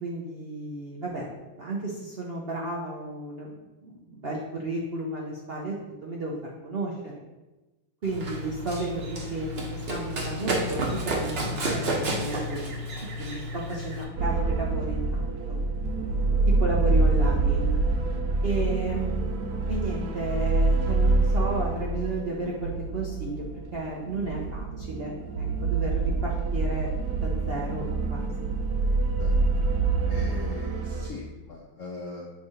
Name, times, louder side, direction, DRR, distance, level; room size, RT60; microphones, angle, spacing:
voice 1, 0.0-1.3 1.6-5.7 6.0-7.1 8.0-10.8 11.0-12.8 13.2-15.6 16.6-17.8 18.4-19.1 19.7-23.4 23.7-26.9 27.2-28.5, right 2 dB, 85° right, -3 dB, 0.5 m, -33 dB
Run, 8.0-14.0, right 1 dB, 45° right, 0.8 m, -31 dB
sound 1, 14.2-31.1, right 3 dB, 65° right, 1.2 m, -26 dB
voice 2, 30.1-32.3, left 3 dB, 75° left, -1 dB, 0.7 m, -39 dB
7.1 x 2.9 x 4.8 m, 1.1 s
omnidirectional pair, 2.1 m